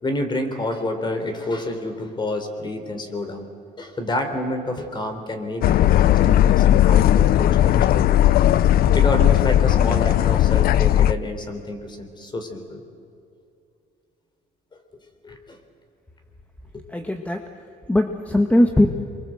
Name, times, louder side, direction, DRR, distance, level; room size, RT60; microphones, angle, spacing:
voice 1, 0.0-3.5 3.8-8.3 8.9-12.8 15.2-15.6 16.7-16.8, left 2 dB, 25° left, 6 dB, 3.8 m, -29 dB
sound 1, 5.6-11.1, left 12 dB, 60° left, 0.6 m, -16 dB
voice 2, 16.9-17.5 17.9-18.9, left 1 dB, 10° left, 5 dB, 1.4 m, -19 dB
28.0 x 23.0 x 7.8 m, 2.6 s
cardioid pair, 110°, 17 cm